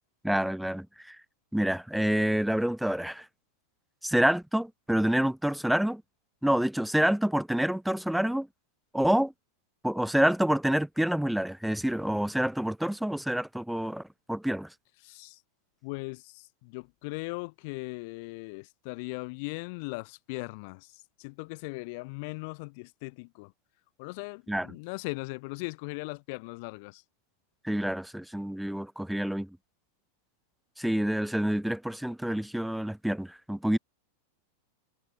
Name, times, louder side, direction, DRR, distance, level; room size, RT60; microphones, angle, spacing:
voice 1, 0.2-1.2 1.5-3.3 4.0-6.0 6.4-8.5 8.9-9.3 9.8-14.0 14.3-14.7 24.5-24.7 27.6-29.6 30.8-33.8, right 1 dB, ahead, 0.5 m, -27 dB
voice 2, 15.0-15.4 15.8-20.9 21.2-23.5 24.0-27.0, left 30 dB, 45° left, 4.7 m, -39 dB
figure-of-eight pair, 90°, 0 cm